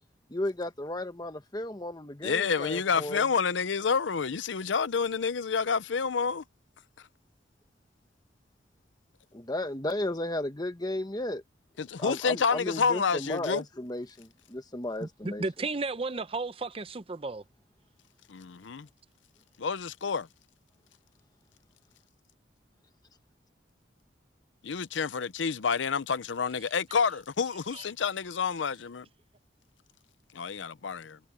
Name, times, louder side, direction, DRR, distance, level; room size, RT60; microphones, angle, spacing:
voice 1, 0.3-3.3 9.3-11.4 12.0-15.5, left 1 dB, 20° left, 1.2 m, -34 dB
voice 2, 2.2-6.4 11.8-13.6 18.3-18.9 19.6-20.3 24.6-29.1 30.3-31.2, left 5 dB, 90° left, 0.6 m, -29 dB
voice 3, 15.0-17.4 27.7-27.8, right 3 dB, 30° right, 0.7 m, -34 dB
head